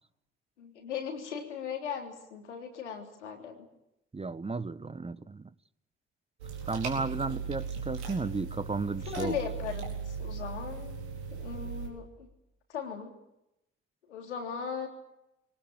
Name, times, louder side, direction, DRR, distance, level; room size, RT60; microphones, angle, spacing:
voice 1, 0.6-3.7 9.1-10.9 11.3-12.3 12.7-13.1 14.1-14.9, left 7 dB, 85° left, 3 dB, 3.5 m, -38 dB
voice 2, 4.1-5.5 6.7-9.4, right 4 dB, 15° right, 17 dB, 1.1 m, -34 dB
sound 1, 6.4-11.9, right 6 dB, 80° right, 4.5 m, -38 dB
24.5 x 19.0 x 9.0 m, 0.88 s
hypercardioid pair, 50°, 34 cm